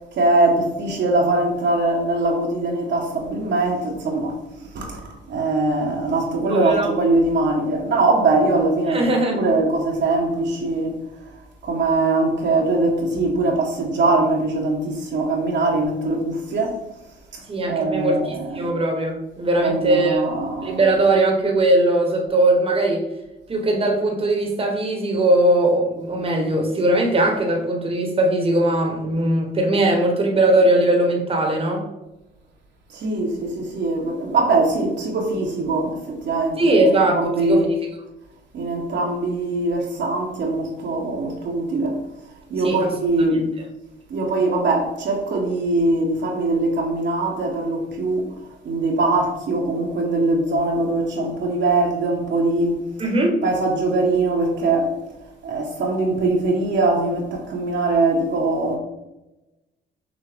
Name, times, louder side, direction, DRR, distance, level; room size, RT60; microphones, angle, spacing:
voice 1, 0.2-4.4 4.7-5.0 5.3-9.1 9.3-10.9 11.6-16.7 17.3-18.7 19.6-20.8 32.9-37.7 38.5-42.0 42.5-43.5 44.1-48.3 48.6-52.8 53.4-54.9 55.4-58.8, right 2 dB, 65° right, 0.9 m, -22 dB
voice 2, 6.5-6.9 8.9-9.4 17.5-20.2 20.6-23.0 23.5-31.8 36.6-37.7 42.6-42.9 43.3-43.5 53.0-53.4, right 1 dB, 30° right, 0.9 m, -20 dB
6.1 x 2.1 x 3.4 m
cardioid pair, 90°, 20 cm